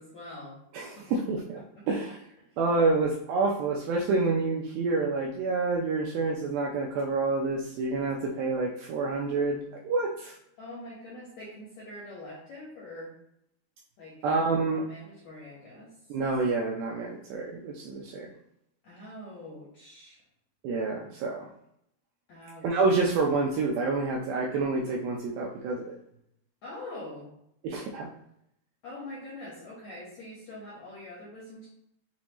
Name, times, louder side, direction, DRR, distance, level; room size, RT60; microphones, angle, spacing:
voice 1, 0.0-0.6 1.0-1.1 1.7-1.9 10.6-13.1 14.0-14.2 14.6-15.9 18.8-20.2 22.3-22.8 26.6-27.3 28.8-31.7, left 1 dB, 65° left, -7 dB, 1.8 m, -44 dB
voice 2, 0.7-1.6 1.9-2.2 2.6-10.4 14.2-14.8 16.1-18.3 20.6-21.5 22.6-26.0 27.6-28.1, right 3 dB, 80° right, -1 dB, 2.2 m, -28 dB
7.0 x 2.5 x 3.0 m, 0.74 s
omnidirectional pair, 4.6 m